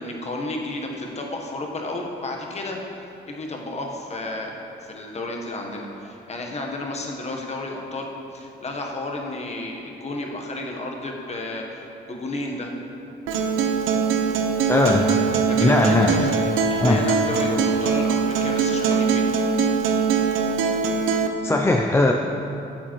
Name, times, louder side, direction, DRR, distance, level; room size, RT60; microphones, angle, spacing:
voice 1, 0.0-2.8 3.3-4.5 4.8-12.7 15.5-19.3, left 2 dB, 35° left, 1 dB, 1.1 m, -32 dB
Acoustic guitar, 13.3-21.3, right 5 dB, 85° right, 0.5 m, -22 dB
voice 2, 14.7-15.2 15.6-16.3 16.8-17.0 21.4-22.1, left 2 dB, 15° left, 1 dB, 0.4 m, -19 dB
8.5 x 7.2 x 3.0 m, 2.8 s
cardioid pair, 90°, 20 cm